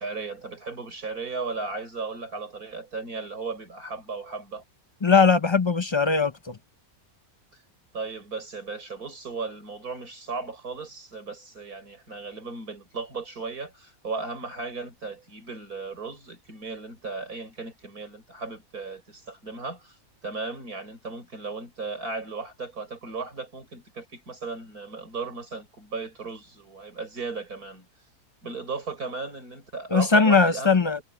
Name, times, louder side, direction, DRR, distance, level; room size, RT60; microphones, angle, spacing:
voice 1, 0.0-4.6 7.9-20.0 20.2-27.9 28.4-30.9, right 4 dB, 90° right, 6.3 m, -36 dB
voice 2, 5.0-6.6 29.9-31.0, left 4 dB, 35° left, 0.5 m, -20 dB
omnidirectional pair, 1.5 m